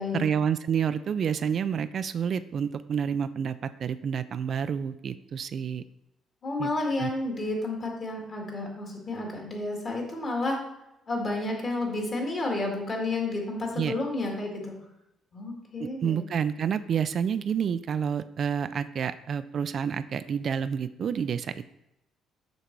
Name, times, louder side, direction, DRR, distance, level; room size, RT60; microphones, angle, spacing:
voice 1, 0.1-5.8 6.6-6.7 7.0-7.1 13.8-13.9 15.8-21.6, right 7 dB, 45° right, 12 dB, 0.3 m, -29 dB
voice 2, 6.4-10.6 11.1-14.7 15.3-16.2, left 2 dB, 35° left, 0 dB, 1.9 m, -31 dB
6.7 x 6.3 x 4.5 m, 0.89 s
cardioid pair, 130°, 0 cm